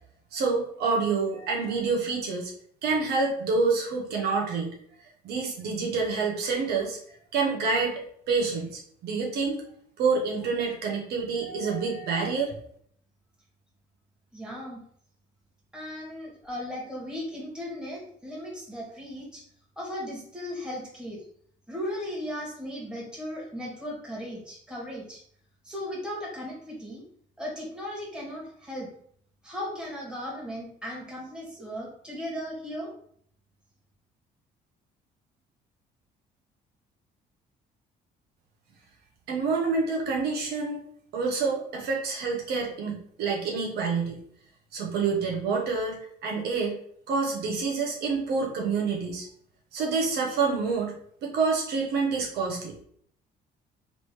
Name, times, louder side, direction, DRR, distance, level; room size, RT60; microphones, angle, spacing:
voice 1, 0.3-2.5 2.8-4.7 5.2-8.0 8.3-9.6 10.0-12.5 39.3-40.8 41.1-44.2 44.7-46.7 47.1-49.3 49.7-51.0 51.2-52.7, right 4 dB, 70° right, -1 dB, 1.1 m, -27 dB
voice 2, 14.3-14.8 15.7-19.4 19.8-21.2 21.7-25.2 25.6-27.0 27.4-28.9 29.4-32.9, equal, 5° right, -4 dB, 1.8 m, -36 dB
4.0 x 3.2 x 3.1 m, 0.62 s
cardioid pair, 110°, 17 cm